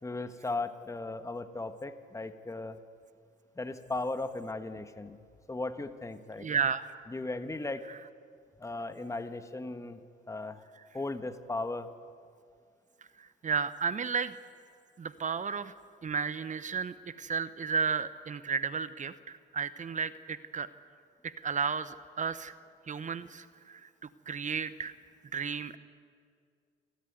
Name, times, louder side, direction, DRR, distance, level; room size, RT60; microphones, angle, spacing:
voice 1, 0.0-2.8 3.6-5.2 5.5-6.5 7.1-7.8 8.6-10.0 10.3-10.6 10.9-11.9, left 2 dB, 15° left, 9 dB, 1.3 m, -37 dB
voice 2, 6.4-6.9 7.9-8.0 13.2-14.3 15.0-15.7 16.0-20.7 21.2-22.5 22.9-23.9 24.3-24.9 25.3-25.8, right 6 dB, 40° right, 14 dB, 0.9 m, -33 dB
27.5 x 12.5 x 9.4 m, 2.2 s
cardioid pair, 90°, 20 cm